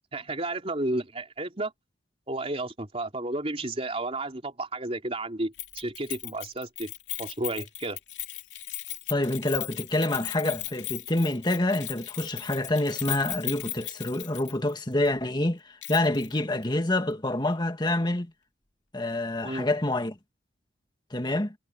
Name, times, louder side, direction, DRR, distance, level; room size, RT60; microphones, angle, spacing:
voice 1, 0.1-1.7 2.3-6.9 7.2-8.0 19.4-19.7, right 2 dB, 35° right, 3.7 m, -32 dB
Keys jangling, 5.6-14.7 15.0-15.1 15.8-16.3 16.6-16.7, left 14 dB, 85° left, 2.9 m, -37 dB
voice 2, 9.1-18.3 18.9-20.2 21.1-21.5, left 1 dB, 25° left, 1.8 m, -27 dB
head